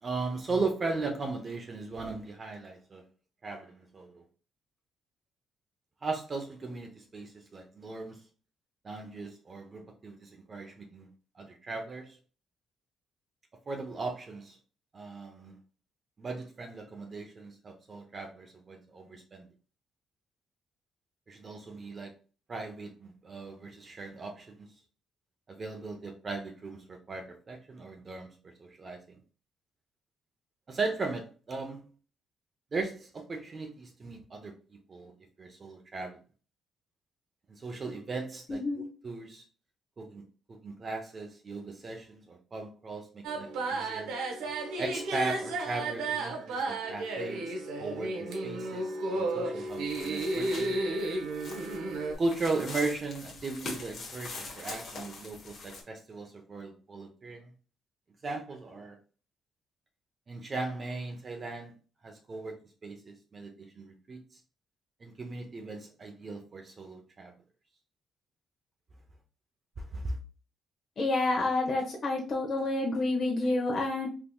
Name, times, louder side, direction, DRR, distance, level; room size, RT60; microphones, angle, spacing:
voice 1, 0.0-3.0 3.4-4.2 6.0-8.2 8.8-12.2 13.7-14.6 14.9-15.6 16.2-19.4 21.3-22.1 22.5-24.7 25.5-29.2 30.7-31.9 32.7-34.5 34.9-35.1 35.4-36.2 37.5-39.4 40.0-40.2 40.5-44.1 44.8-50.8 52.2-57.5 58.2-59.0 60.3-61.7 62.0-64.2 65.0-67.3 69.8-70.2, right 3 dB, 40° right, 3 dB, 0.7 m, -38 dB
voice 2, 38.5-38.8 71.0-74.1, left 2 dB, 45° left, -2 dB, 0.8 m, -29 dB
sound 1, 43.2-52.1, right 2 dB, 90° right, 0.8 m, -33 dB
sound 2, 49.7-55.8, left 3 dB, 65° left, 1.1 m, -44 dB
3.5 x 2.9 x 2.2 m, 0.36 s
cardioid pair, 90°, 0 cm